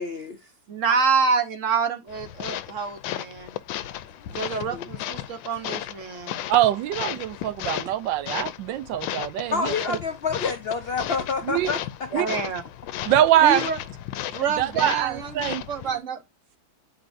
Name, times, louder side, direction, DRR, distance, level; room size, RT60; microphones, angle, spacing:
voice 1, 0.0-0.5 4.2-4.9 9.5-12.2, left 5 dB, 65° left, 0.5 m, -29 dB
voice 2, 0.7-3.6 4.3-6.4 12.1-12.6 13.4-13.8 14.3-16.2, right 5 dB, 50° right, 1.2 m, -27 dB
sound 1, 2.1-16.0, left 12 dB, 85° left, 1.3 m, -35 dB
voice 3, 6.5-10.0 11.5-11.7 12.1-12.4 13.0-13.7 14.6-15.6, right 12 dB, 80° right, 1.3 m, -23 dB
9.2 x 5.0 x 2.5 m
omnidirectional pair, 2.0 m